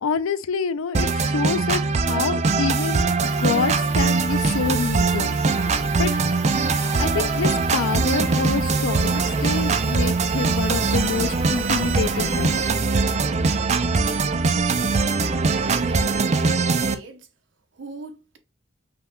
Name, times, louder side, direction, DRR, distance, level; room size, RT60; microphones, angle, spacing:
voice 1, 0.0-5.4 6.0-6.2 7.0-12.6, left 5 dB, 85° left, 0.4 m, -27 dB
sound 1, 0.9-16.9, right 4 dB, 35° right, 0.4 m, -22 dB
sound 2, 3.2-12.7, right 1 dB, 10° right, 1.3 m, -39 dB
sound 3, 4.3-16.2, right 1 dB, 20° left, 1.1 m, -34 dB
voice 2, 15.6-17.3 17.7-18.4, right 3 dB, 60° right, 0.8 m, -39 dB
5.7 x 2.2 x 3.6 m
head